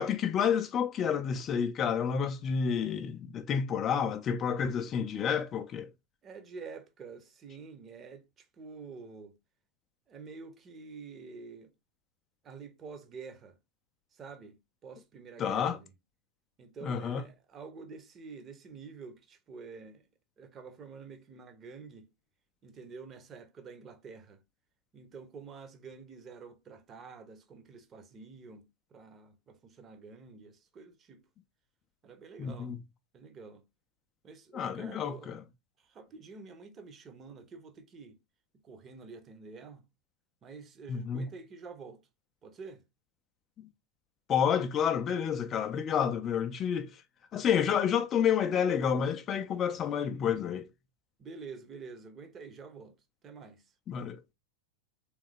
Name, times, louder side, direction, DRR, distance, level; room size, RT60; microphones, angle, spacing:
voice 1, 0.0-5.9 15.4-15.8 16.8-17.2 32.4-32.8 34.5-35.4 40.9-41.3 43.6-43.7 44.3-47.0 47.3-50.7 53.9-54.3, left 7 dB, 30° left, 0.4 m, -29 dB
voice 2, 6.2-8.2 8.6-9.3 10.1-11.7 12.4-13.6 14.1-14.6 14.8-15.9 16.6-20.0 20.4-22.1 22.6-24.4 24.9-31.2 32.0-32.7 33.1-33.6 34.2-35.3 35.9-38.2 38.6-39.8 40.4-42.0 42.4-42.8 51.2-52.9 53.2-53.6, right 4 dB, 25° right, 0.7 m, -48 dB
3.5 x 3.1 x 3.3 m
figure-of-eight pair, 90°, 0 cm